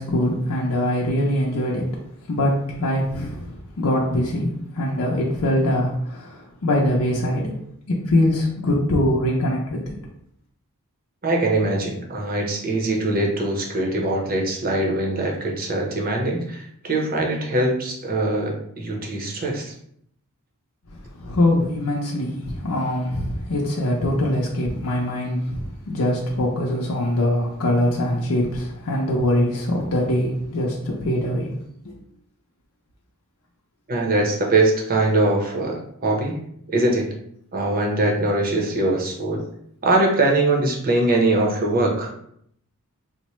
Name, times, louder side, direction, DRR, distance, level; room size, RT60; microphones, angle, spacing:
voice 1, 0.0-1.9 2.3-7.5 7.9-10.0 21.2-31.5 31.8-31.9, left 1 dB, 75° left, -3 dB, 0.6 m, -23 dB
voice 2, 11.2-19.7 33.9-36.4 36.7-37.1 37.5-39.4 39.8-42.1, right 2 dB, 40° right, 0 dB, 0.7 m, -22 dB
4.2 x 2.1 x 3.0 m, 0.69 s
head